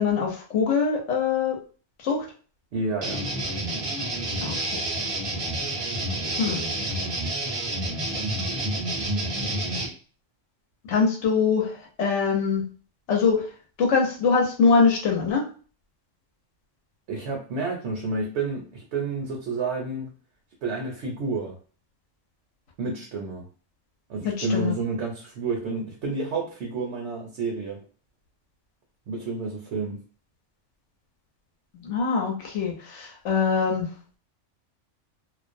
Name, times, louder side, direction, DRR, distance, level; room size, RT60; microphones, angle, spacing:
voice 1, 0.0-1.6 2.0-2.2 4.4-4.6 6.4-6.7 10.9-12.6 13.1-13.5 13.8-15.5 24.2-24.8 31.8-33.9, left 5 dB, 70° left, 0 dB, 1.0 m, -23 dB
voice 2, 2.7-3.2 17.1-20.1 20.6-21.6 22.8-23.5 24.1-27.8 29.1-30.0, right 3 dB, 65° right, 0 dB, 0.8 m, -30 dB
sound 1, 3.0-9.9, right 1 dB, 45° right, 0.4 m, -29 dB
2.4 x 2.0 x 2.5 m, 0.39 s
omnidirectional pair, 1.3 m